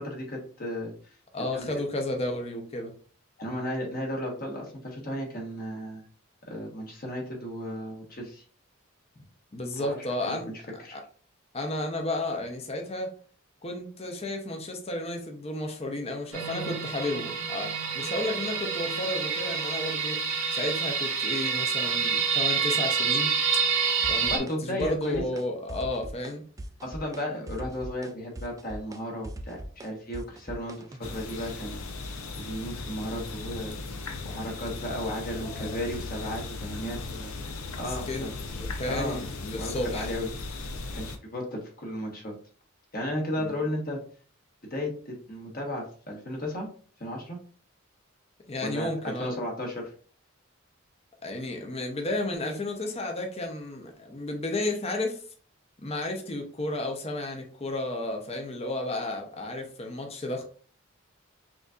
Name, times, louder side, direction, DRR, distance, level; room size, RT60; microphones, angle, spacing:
voice 1, 0.0-0.9 1.5-1.6 3.4-6.0 6.5-8.4 9.8-10.0 10.2-10.4 10.8-11.0 24.2-25.2 26.8-31.8 32.4-33.8 34.2-38.3 38.9-39.2 39.6-40.7 40.9-41.0 41.3-42.3 42.9-44.0 44.7-46.7 47.0-47.4 48.6-49.9, left 1 dB, 45° left, 1.2 m, -34 dB
voice 2, 1.3-2.9 9.2-9.3 9.5-10.5 10.9-11.0 11.5-13.1 13.6-20.2 20.5-23.3 24.1-26.4 35.4-35.8 38.1-40.1 43.4-43.6 48.5-49.4 51.2-55.2 55.8-60.4, left 2 dB, 30° left, 0.7 m, -32 dB
sound 1, 16.3-24.4, right 6 dB, 85° right, 1.5 m, -28 dB
sound 2, 24.0-24.5 24.8-25.4 25.7-26.3 26.6-27.2 27.5-31.1, right 1 dB, 15° right, 0.3 m, -40 dB
sound 3, 31.0-41.2, left 3 dB, 90° left, 0.6 m, -37 dB
6.0 x 2.7 x 2.4 m
head